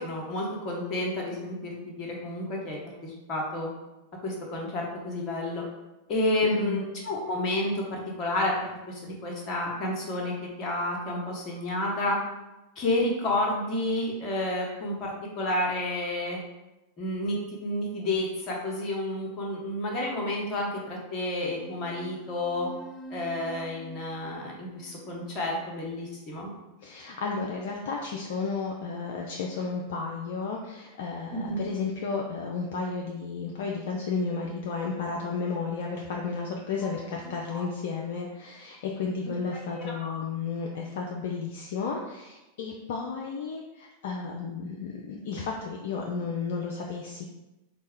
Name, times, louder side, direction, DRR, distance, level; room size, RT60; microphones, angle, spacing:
voice 1, 0.0-3.7 4.2-5.6 6.1-12.2 12.8-16.4 17.0-22.7 23.1-26.5 31.3-31.6 37.5-37.7 39.8-40.1, left 1 dB, 35° left, -1 dB, 0.9 m, -30 dB
voice 2, 6.4-6.8 26.8-47.2, left 4 dB, 55° left, 0 dB, 0.4 m, -33 dB
sound 1, 21.4-26.4, right 2 dB, 5° right, 0.7 m, -47 dB
4.0 x 2.2 x 3.5 m, 1.0 s
figure-of-eight pair, 90°, 0 cm